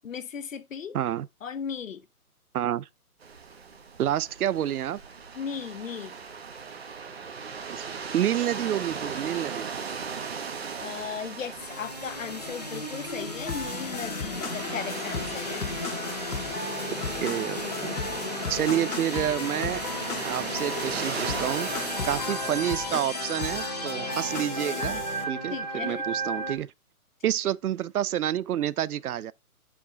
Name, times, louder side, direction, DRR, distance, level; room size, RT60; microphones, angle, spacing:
voice 1, 0.0-1.0 1.4-2.1 5.3-6.1 10.8-15.8 25.5-26.0 27.2-27.3, left 7 dB, 60° left, 0.8 m, -36 dB
voice 2, 0.9-1.3 2.5-2.9 4.0-5.0 7.7-9.7 17.2-18.0 18.5-19.8 20.2-26.7 27.2-29.3, right 11 dB, 75° right, 0.5 m, -29 dB
sound 1, 3.2-22.8, right 5 dB, 45° right, 1.2 m, -38 dB
sound 2, 11.6-26.6, equal, 30° left, 0.6 m, -35 dB
sound 3, 13.5-25.2, left 5 dB, 80° left, 1.7 m, -35 dB
7.3 x 5.0 x 3.8 m
hypercardioid pair, 180°, 45 cm